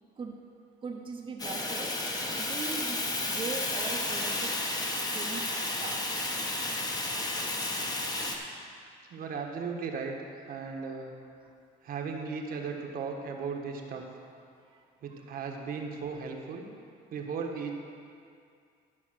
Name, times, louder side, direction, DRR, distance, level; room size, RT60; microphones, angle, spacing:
voice 1, 0.8-2.0 2.3-4.8 5.1-6.3 14.5-14.8 15.1-15.3, right 4 dB, 30° right, 0 dB, 0.9 m, -41 dB
Fire, 1.4-8.4, left 2 dB, 20° left, 1.2 m, -32 dB
voice 2, 9.1-10.2 10.5-11.1 11.8-14.0 15.0-16.7 17.1-17.7, right 5 dB, 60° right, 2 dB, 1.3 m, -36 dB
12.5 x 5.4 x 6.2 m, 2.3 s
cardioid pair, 110°, 17 cm